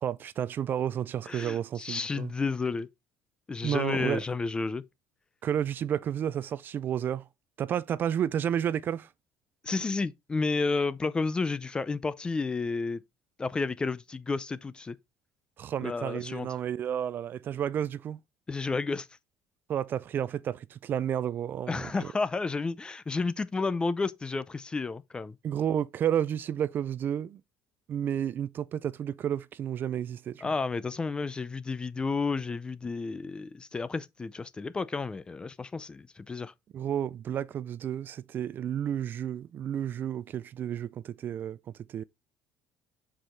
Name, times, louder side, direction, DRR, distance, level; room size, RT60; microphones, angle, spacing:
voice 1, 0.0-2.3 3.6-4.2 5.4-7.2 7.6-9.1 15.6-18.2 19.7-22.1 25.4-27.4 27.9-30.5 36.7-41.6 41.9-42.0, right 9 dB, 40° right, 0.4 m, -31 dB
voice 2, 1.3-2.9 3.5-4.8 9.6-13.0 13.4-15.0 15.8-16.5 18.5-19.1 21.7-25.4 30.4-36.5, left 4 dB, 20° left, 0.5 m, -31 dB
7.8 x 4.9 x 4.3 m
cardioid pair, 130°, 5 cm